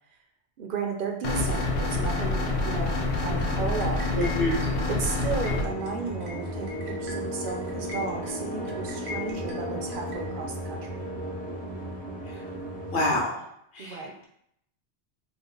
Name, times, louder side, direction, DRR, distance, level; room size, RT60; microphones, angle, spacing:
voice 1, 0.6-4.3 4.9-11.1 13.8-14.1, right 4 dB, 60° right, 3 dB, 0.6 m, -34 dB
sound 1, 1.2-5.6, left 2 dB, 90° left, 0.9 m, -27 dB
sound 2, 3.0-10.2, left 3 dB, 80° right, 1.0 m, -41 dB
voice 2, 4.1-4.6 12.9-13.4 13.7-14.1, left 1 dB, 55° left, -2 dB, 0.8 m, -27 dB
sound 3, 5.5-13.2, right 1 dB, 10° left, 0.4 m, -35 dB
3.0 x 2.2 x 3.7 m, 0.73 s
omnidirectional pair, 1.1 m